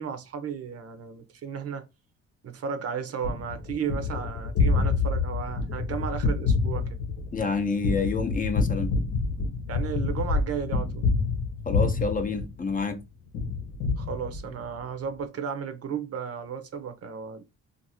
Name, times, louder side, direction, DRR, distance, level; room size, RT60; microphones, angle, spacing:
voice 1, 0.0-1.9 2.4-6.9 9.7-11.1 14.0-17.5, right 7 dB, 50° right, 0.6 m, -34 dB
Gunshot gunfire, 3.2-12.9 13.3-14.8, left 4 dB, 80° left, 0.9 m, -27 dB
voice 2, 7.3-8.9 11.7-13.0, left 4 dB, 30° left, 0.6 m, -28 dB
2.5 x 2.5 x 2.7 m
cardioid pair, 90°, 30 cm